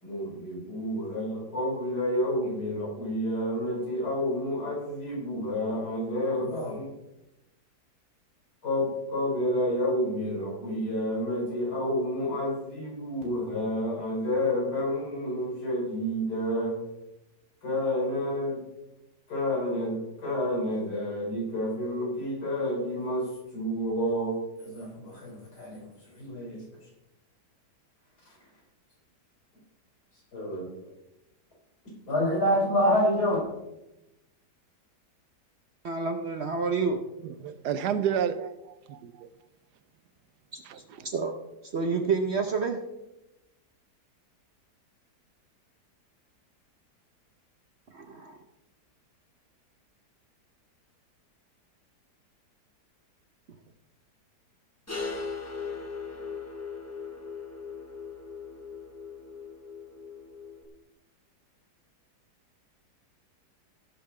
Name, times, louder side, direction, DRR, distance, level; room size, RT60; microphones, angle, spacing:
voice 1, 0.0-6.9 8.6-16.8 17.6-18.6 19.3-26.9 28.2-28.4 30.3-30.7 32.1-33.4, equal, 70° left, -3 dB, 5.1 m, -29 dB
voice 2, 35.8-37.0 40.5-41.4 41.6-42.8 47.9-48.4, right 4 dB, 50° right, 5 dB, 0.9 m, -29 dB
voice 3, 37.4-38.5 38.9-39.3 40.7-40.8, right 8 dB, 75° right, 12 dB, 1.2 m, -29 dB
sound 1, 54.9-60.6, left 4 dB, 10° left, 1.0 m, -39 dB
17.0 x 5.7 x 4.3 m, 0.93 s
omnidirectional pair, 1.8 m